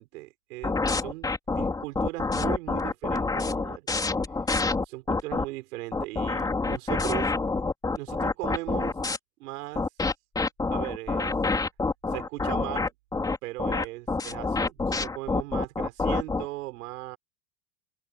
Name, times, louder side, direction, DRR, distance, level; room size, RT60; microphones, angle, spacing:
voice 1, 0.0-3.9 4.8-7.3 7.9-9.0 9.4-9.9 10.7-11.3 12.1-12.9 13.4-17.2, right 20 dB, 75° right, 5.9 m, -38 dB
sound 1, 0.6-5.4 5.9-9.2 9.8-16.5, left 3 dB, 10° left, 4.4 m, -27 dB
open air
supercardioid pair, 180°, 46 cm